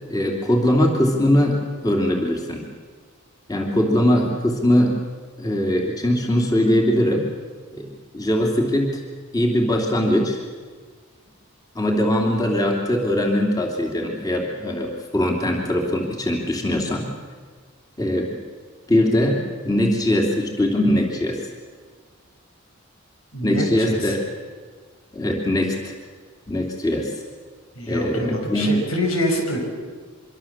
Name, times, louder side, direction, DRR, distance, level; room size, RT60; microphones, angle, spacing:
voice 1, 0.1-2.6 3.5-5.0 5.4-7.3 7.7-9.0 9.3-10.4 11.7-17.0 18.0-18.3 18.9-21.4 23.4-24.2 25.1-25.9 26.5-27.1 27.9-28.8, left 1 dB, 20° left, 0 dB, 3.0 m, -21 dB
voice 2, 23.3-24.2 27.7-29.6, equal, 85° left, 2 dB, 6.6 m, -25 dB
25.5 x 24.0 x 7.4 m, 1.5 s
head